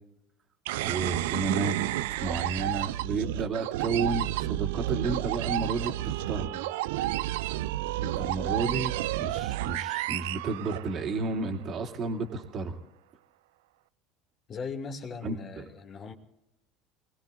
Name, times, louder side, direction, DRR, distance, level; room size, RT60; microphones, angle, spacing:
sound 1, 0.7-11.3, right 15 dB, 65° right, 0.5 m, -31 dB
voice 1, 0.8-1.8 2.2-6.6 8.0-8.9 9.2-12.8 15.2-15.6, right 3 dB, 40° right, 2 dB, 2.5 m, -32 dB
voice 2, 14.5-16.1, left 5 dB, 35° left, 4 dB, 2.4 m, -38 dB
27.5 x 19.5 x 2.6 m, 0.85 s
figure-of-eight pair, 70°, 0 cm